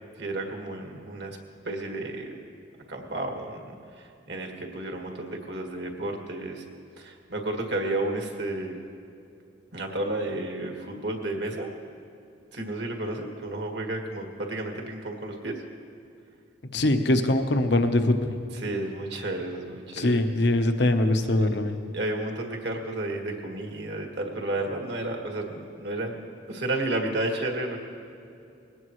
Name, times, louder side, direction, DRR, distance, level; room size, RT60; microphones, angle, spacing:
voice 1, 0.2-1.4 1.6-2.4 2.9-6.6 7.0-8.8 9.7-11.7 12.5-15.6 18.5-20.2 21.9-26.2 26.5-27.8, right 2 dB, 60° right, 2 dB, 1.8 m, -32 dB
voice 2, 16.7-18.4 19.9-21.8, left 1 dB, 60° left, 7 dB, 1.0 m, -22 dB
20.5 x 17.5 x 3.2 m, 2.7 s
head